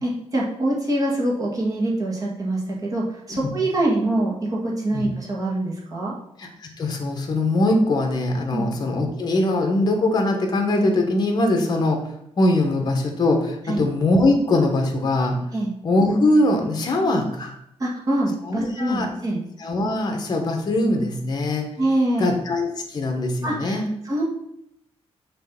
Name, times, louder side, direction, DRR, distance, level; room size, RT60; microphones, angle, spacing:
voice 1, 0.0-6.1 8.5-8.7 13.7-13.8 15.5-15.7 17.8-19.4 21.8-22.3 23.4-23.7 24.0-24.2, right 1 dB, 30° right, -4 dB, 1.7 m, -24 dB
voice 2, 6.4-12.0 12.4-15.4 15.8-17.5 18.5-19.1 19.6-21.7 22.2-23.8, left 2 dB, 40° left, 3 dB, 1.3 m, -21 dB
6.7 x 3.2 x 5.9 m, 0.79 s
wide cardioid pair, 145°, 11 cm